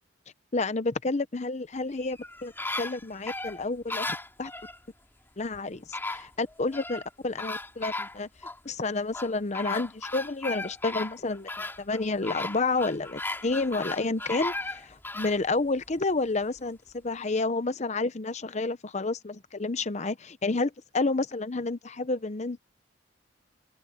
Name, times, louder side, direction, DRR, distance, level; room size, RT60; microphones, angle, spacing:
voice 1, 0.5-2.5 2.8-4.5 5.4-8.3 8.6-11.5 11.8-22.6, left 3 dB, 35° left, 0.8 m, -30 dB
sound 1, 1.9-4.8 5.5-5.6 5.9-7.1 7.4-8.6 9.1-15.4 15.9-16.0, left 2 dB, 10° left, 2.9 m, -36 dB
open air
head